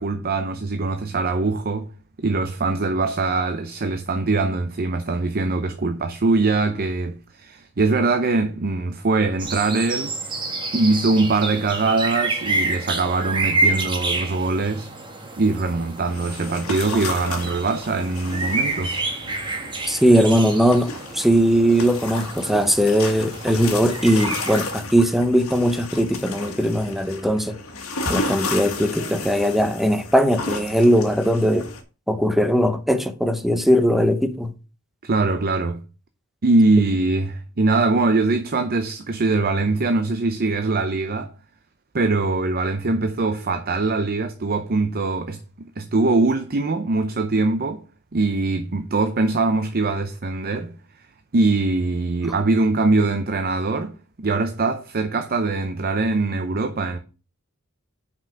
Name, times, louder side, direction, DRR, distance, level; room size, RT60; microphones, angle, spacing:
voice 1, 0.0-1.9 2.2-10.1 10.7-14.9 15.4-18.9 35.0-35.8 36.4-41.3 41.9-45.4 45.8-47.8 48.1-50.7 51.3-57.0, right 3 dB, 45° right, 0.7 m, -22 dB
sound 1, 9.4-24.6, right 2 dB, 20° right, 1.4 m, -29 dB
sound 2, 16.0-31.8, left 3 dB, 85° left, 1.6 m, -33 dB
voice 2, 19.9-27.6 28.1-31.7 32.1-34.5, equal, ahead, 0.7 m, -19 dB
6.0 x 5.4 x 6.6 m
head